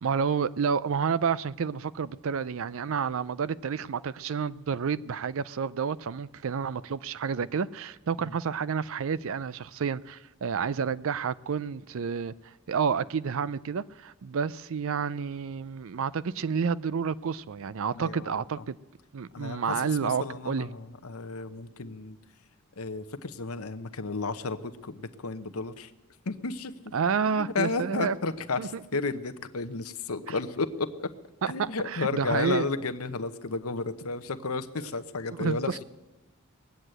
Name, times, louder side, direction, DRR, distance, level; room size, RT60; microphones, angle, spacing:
voice 1, 0.0-12.3 12.7-18.8 19.1-20.7 26.9-28.2 28.6-28.7 31.6-32.7 35.4-35.8, right 6 dB, 65° right, 0.4 m, -30 dB
voice 2, 17.9-18.4 19.3-22.2 22.8-25.9 26.3-26.7 27.4-31.1 31.5-35.8, left 3 dB, 80° left, 0.9 m, -33 dB
20.0 x 8.1 x 9.0 m
head